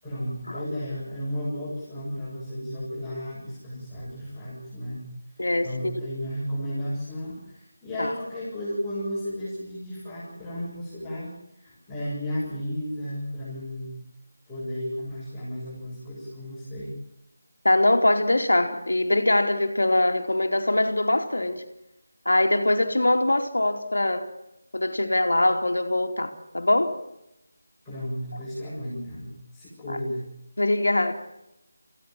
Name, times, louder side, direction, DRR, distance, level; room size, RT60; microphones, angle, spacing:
voice 1, 0.0-5.0 5.6-14.0 14.5-16.9 27.8-30.3, equal, 5° left, -13 dB, 7.5 m, -33 dB
voice 2, 5.4-5.7 8.0-8.1 17.6-21.6 22.2-24.2 24.7-27.0 29.9-30.0 30.6-31.1, left 1 dB, 65° left, 6 dB, 2.7 m, -22 dB
29.0 x 16.0 x 7.6 m, 0.89 s
figure-of-eight pair, 160°, 0 cm